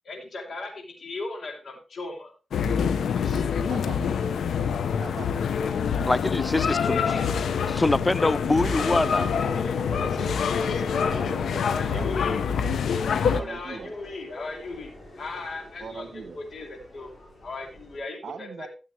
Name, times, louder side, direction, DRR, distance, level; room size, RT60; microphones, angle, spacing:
voice 1, 0.0-2.3 3.1-3.8 6.9-7.2 11.6-12.4 13.2-17.1 17.4-18.7, left 3 dB, 65° left, 3.0 m, -37 dB
sound 1, 2.5-13.4, left 6 dB, 90° left, 0.7 m, -26 dB
voice 2, 3.7-4.0 5.0-5.3 8.6-10.4 10.7-12.2 13.3-13.9 15.8-16.4 18.2-18.7, right 5 dB, 75° right, 1.0 m, -40 dB
Subway metro underground, 5.6-18.0, left 1 dB, 40° left, 5.4 m, -46 dB
voice 3, 6.1-7.2 7.7-9.3, left 2 dB, 20° left, 0.4 m, -24 dB
13.5 x 7.7 x 3.2 m
cardioid pair, 65°, 0 cm